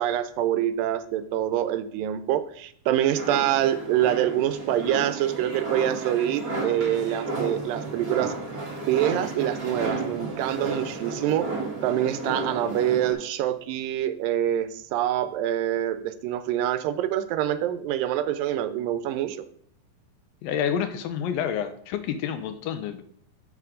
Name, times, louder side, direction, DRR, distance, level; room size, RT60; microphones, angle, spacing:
voice 1, 0.0-8.3 8.9-11.5 11.8-19.4, right 11 dB, 85° right, 11 dB, 2.2 m, -25 dB
sound 1, 3.1-13.1, right 3 dB, 40° right, 1.4 m, -32 dB
voice 2, 20.4-23.0, left 8 dB, 85° left, 9 dB, 2.4 m, -28 dB
8.0 x 5.9 x 3.7 m, 0.63 s
omnidirectional pair, 4.0 m